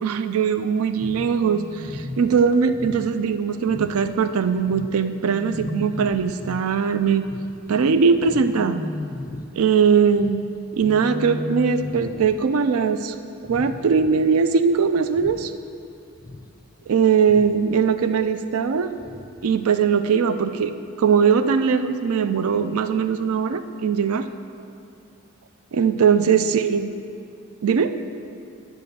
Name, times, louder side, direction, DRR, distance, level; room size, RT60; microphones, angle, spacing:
voice 1, 0.0-7.2 7.7-8.8 9.5-10.4 10.7-13.1 13.5-15.5 16.9-18.9 19.4-24.3 25.7-26.9 27.6-27.9, right 6 dB, 90° right, 10 dB, 0.4 m, -20 dB
sound 1, 1.0-12.7 13.0-13.1 13.4-14.4 14.7-15.8 16.1-17.7 19.0-19.4 19.8-19.9, left 2 dB, 15° left, 0.3 m, -36 dB
9.4 x 4.1 x 6.8 m, 2.4 s
head